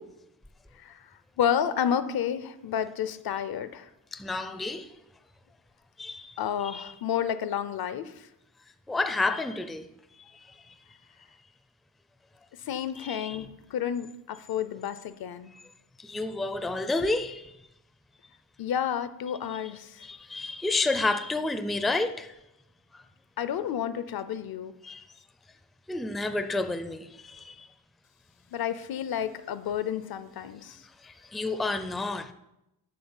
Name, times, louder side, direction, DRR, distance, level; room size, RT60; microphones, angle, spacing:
voice 1, 1.4-3.9 6.4-8.3 12.7-15.5 18.6-20.0 23.4-24.7 28.5-30.8, left 9 dB, 70° left, 0.7 m, -30 dB
voice 2, 4.1-4.9 6.0-6.3 6.7-6.8 8.9-9.9 13.0-13.4 16.0-17.5 20.0-22.3 24.8-25.0 25.9-27.7 31.0-32.3, left 2 dB, ahead, 0.4 m, -30 dB
7.9 x 5.9 x 7.1 m
wide cardioid pair, 135°, 38 cm